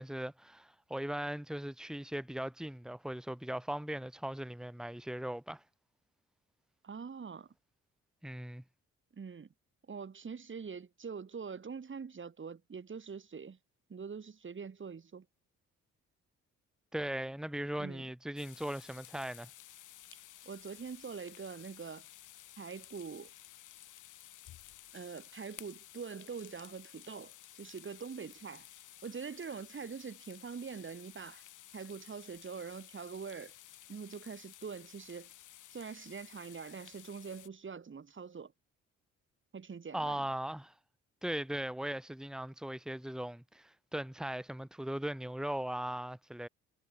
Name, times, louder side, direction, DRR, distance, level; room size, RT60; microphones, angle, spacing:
voice 1, 0.0-5.6 8.2-8.6 16.9-19.5 39.9-40.7 41.2-46.5, right 1 dB, ahead, 2.5 m, -39 dB
voice 2, 6.8-7.5 9.1-9.5 9.9-13.6 13.9-15.2 17.8-18.0 20.4-22.1 22.6-23.3 24.9-28.7 29.0-31.4 31.7-33.5 33.9-35.3 35.7-38.5 39.5-40.3, right 6 dB, 40° right, 6.7 m, -44 dB
sound 1, 18.4-37.5, left 13 dB, 80° left, 4.7 m, -55 dB
cardioid pair, 85°, 30 cm